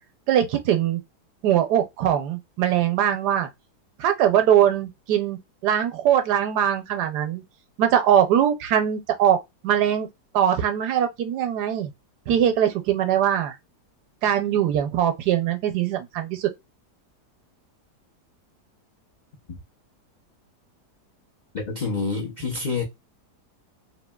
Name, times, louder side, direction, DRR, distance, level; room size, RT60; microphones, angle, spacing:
voice 1, 0.3-1.0 1.4-3.5 4.0-7.4 7.8-9.4 9.6-10.1 10.3-11.9 12.3-13.6 14.2-16.5, right 10 dB, 80° right, 1.2 m, -21 dB
voice 2, 21.5-22.8, left 4 dB, 70° left, 0.4 m, -27 dB
3.0 x 2.6 x 2.2 m
omnidirectional pair, 1.8 m